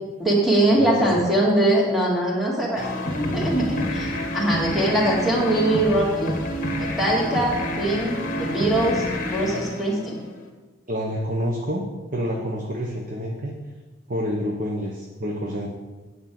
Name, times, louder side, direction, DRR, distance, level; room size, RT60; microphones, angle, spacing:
voice 1, 0.2-6.4 6.8-9.0 9.3-10.2, right 1 dB, ahead, -4 dB, 2.2 m, -22 dB
voice 2, 0.8-1.3 10.9-11.8 12.1-13.5 14.1-15.7, equal, 40° right, -1 dB, 1.1 m, -28 dB
sound 1, 2.8-10.5, left 1 dB, 45° left, 1.3 m, -29 dB
9.2 x 5.4 x 7.7 m, 1.2 s
head